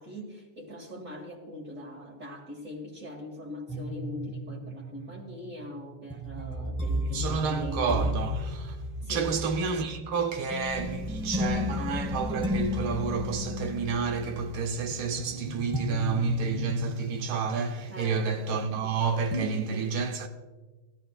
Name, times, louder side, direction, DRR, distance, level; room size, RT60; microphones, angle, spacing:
voice 1, 0.0-8.1 9.0-9.4 17.9-18.3 19.4-19.9, equal, 40° right, 2.1 m, -41 dB
sound 1, 3.7-18.9 19.3-19.5, left 1 dB, 5° right, 0.6 m, -34 dB
voice 2, 7.1-8.8 9.0-20.3, right 5 dB, 75° right, 1.8 m, -30 dB
19.5 x 13.5 x 2.4 m
omnidirectional pair, 2.4 m